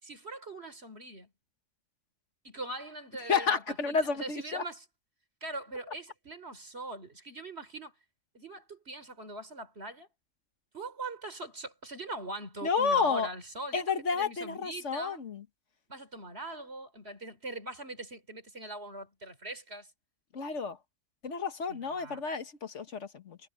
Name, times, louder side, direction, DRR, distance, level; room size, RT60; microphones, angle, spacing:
voice 1, 0.0-1.3 2.4-4.8 5.4-7.9 8.3-10.1 10.7-13.8 14.1-15.2 15.9-19.9 21.7-22.2, right 2 dB, 50° right, 4.0 m, -42 dB
voice 2, 3.3-4.6 12.6-13.3 13.7-15.4 20.3-20.8 21.2-23.4, left 5 dB, 65° left, 1.7 m, -30 dB
omnidirectional pair, 1.3 m